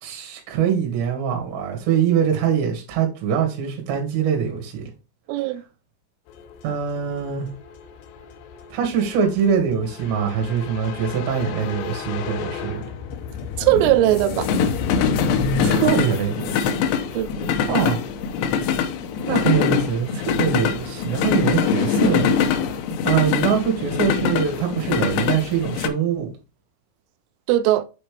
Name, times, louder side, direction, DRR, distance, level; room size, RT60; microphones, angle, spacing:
voice 1, 0.0-4.9 5.5-5.6 6.6-7.5 8.7-12.9 15.6-16.7 17.7-18.0 19.3-22.3 23.0-26.3, right 7 dB, 65° right, 4.0 m, -23 dB
voice 2, 5.3-5.6 13.6-14.5 17.1-17.5 27.5-27.9, right 14 dB, 90° right, 3.2 m, -19 dB
sound 1, 6.4-25.9, left 6 dB, 85° left, 2.5 m, -24 dB
7.7 x 4.3 x 3.3 m
omnidirectional pair, 5.6 m